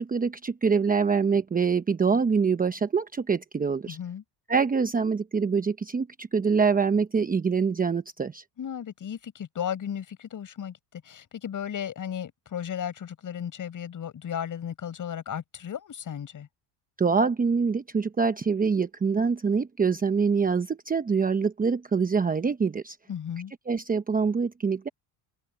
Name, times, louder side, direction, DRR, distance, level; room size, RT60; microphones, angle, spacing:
voice 1, 0.0-4.0 4.5-8.4 17.0-23.0 23.7-24.9, right 5 dB, 20° right, 0.9 m, -25 dB
voice 2, 3.9-4.2 8.6-16.5 23.1-23.5, left 9 dB, 40° left, 6.9 m, -35 dB
cardioid pair, 125°, 46 cm